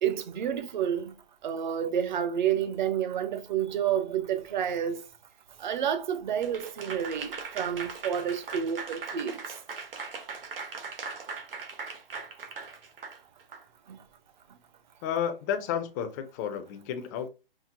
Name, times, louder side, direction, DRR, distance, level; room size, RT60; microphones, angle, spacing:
voice 1, 0.0-1.1 1.4-5.0 5.6-9.4 13.9-14.0, right 9 dB, 55° right, 0.9 m, -29 dB
Applause / Crowd, 6.4-13.6, right 5 dB, 70° right, 1.2 m, -39 dB
voice 2, 15.0-17.3, left 8 dB, 20° left, 0.4 m, -31 dB
5.8 x 2.0 x 2.8 m
hypercardioid pair, 135°, 29 cm